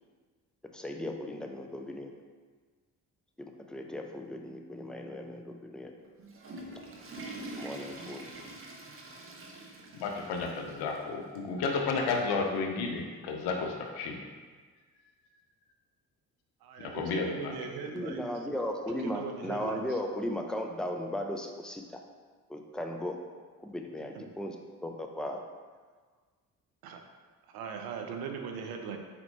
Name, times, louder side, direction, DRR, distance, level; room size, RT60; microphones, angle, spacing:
voice 1, 0.7-2.1 3.4-5.9 7.5-8.3 17.9-22.0 22.5-23.2 23.6-25.4, left 1 dB, ahead, 2 dB, 0.5 m, -36 dB
Water / Toilet flush, 6.0-11.0 11.4-11.5 12.2-12.3 13.6-13.7, right 2 dB, 30° right, 0.8 m, -45 dB
voice 2, 10.0-14.2 16.8-17.5, left 4 dB, 65° left, 2 dB, 0.7 m, -32 dB
voice 3, 16.6-18.3 19.0-20.0 24.2-24.3 26.8-27.0 27.5-29.0, right 6 dB, 60° right, 4 dB, 0.6 m, -39 dB
4.3 x 4.1 x 2.7 m, 1.5 s
hypercardioid pair, 45°, 42 cm